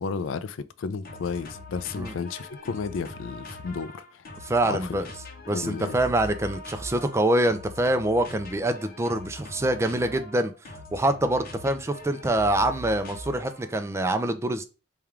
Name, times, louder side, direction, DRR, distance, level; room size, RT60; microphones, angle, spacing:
voice 1, 0.0-4.2 4.7-5.0 5.5-6.0, left 5 dB, 80° left, 0.4 m, -33 dB
sound 1, 1.0-13.8, left 1 dB, 50° left, 0.8 m, -42 dB
voice 2, 4.4-5.1 5.5-10.5 10.9-14.6, right 1 dB, 15° right, 0.4 m, -25 dB
3.4 x 2.4 x 4.4 m
head